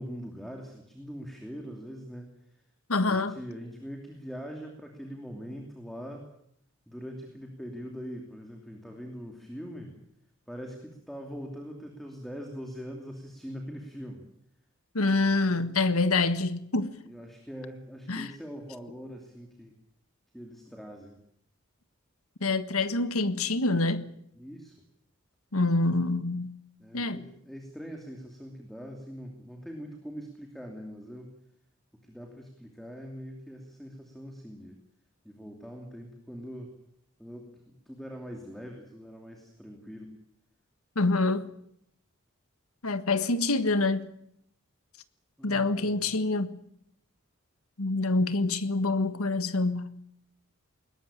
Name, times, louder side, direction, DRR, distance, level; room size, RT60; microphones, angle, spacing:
voice 1, 0.0-2.6 3.0-6.3 6.9-9.9 10.5-14.3 17.0-19.7 20.3-21.2 24.4-24.8 26.8-31.3 32.0-34.8 35.2-36.7 37.2-40.2 45.4-46.1, equal, ahead, 2.7 m, -42 dB
voice 2, 2.9-3.3 14.9-17.0 18.1-18.3 22.4-24.1 25.5-26.5 26.9-27.3 40.9-41.5 42.8-44.1 45.4-46.6 47.8-49.9, left 3 dB, 85° left, 1.6 m, -26 dB
21.0 x 19.5 x 8.9 m
head